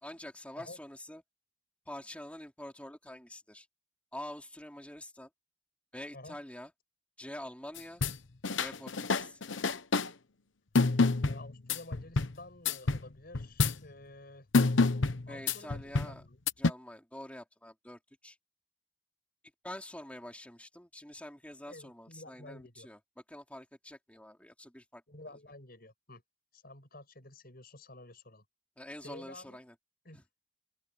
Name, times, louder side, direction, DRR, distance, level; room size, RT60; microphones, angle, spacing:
voice 1, 0.0-1.2 1.9-3.7 4.1-5.3 5.9-6.7 7.2-8.0 8.6-9.4 15.3-16.2 16.6-18.4 19.6-23.0 23.3-25.0 28.8-29.8 30.1-30.2, left 1 dB, 5° left, 3.4 m, -46 dB
sound 1, 7.8-8.2 8.4-10.1 10.8-12.3 12.7-13.1 13.3-13.8 14.5-16.1 16.5-16.7, left 3 dB, 75° left, 1.1 m, -27 dB
voice 2, 11.2-14.5 15.3-16.4 21.7-22.9 25.1-26.2 26.5-28.4 29.0-29.6 30.0-30.2, left 2 dB, 50° left, 7.4 m, -51 dB
open air
head